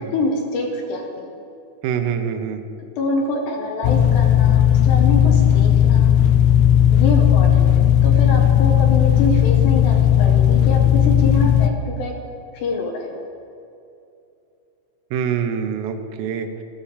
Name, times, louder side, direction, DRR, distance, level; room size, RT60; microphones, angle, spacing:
voice 1, 0.0-1.3 3.0-6.1 6.9-12.1 12.5-13.2, left 2 dB, 65° left, 1 dB, 3.2 m, -25 dB
voice 2, 1.8-2.6 15.1-16.5, right 7 dB, 85° right, 6 dB, 3.5 m, -24 dB
washing mashine dark, 3.8-11.7, left 9 dB, 90° left, 2.5 m, -15 dB
14.0 x 11.5 x 7.2 m, 2.7 s
omnidirectional pair, 5.9 m